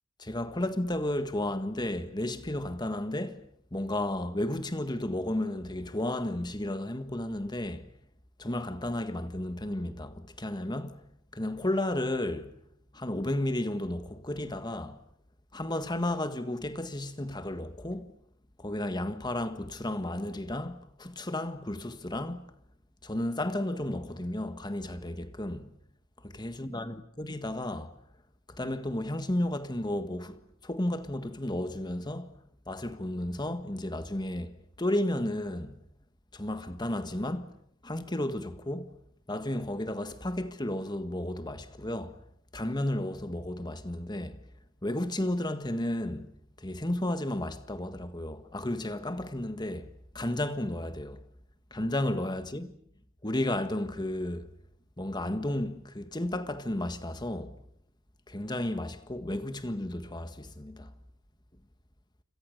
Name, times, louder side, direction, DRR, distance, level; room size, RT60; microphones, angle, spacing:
voice 1, 0.2-7.9 8.4-11.1 11.3-12.6 12.9-15.0 15.5-18.1 18.6-22.4 23.0-25.7 26.2-27.9 28.5-32.4 32.7-35.8 36.3-37.5 37.8-39.0 39.3-42.1 42.5-44.4 44.8-49.9 50.1-51.2 51.7-52.7 53.2-54.5 55.0-57.5 58.3-60.9, left 1 dB, 20° left, 1.6 m, -33 dB
29.0 x 27.5 x 6.7 m
head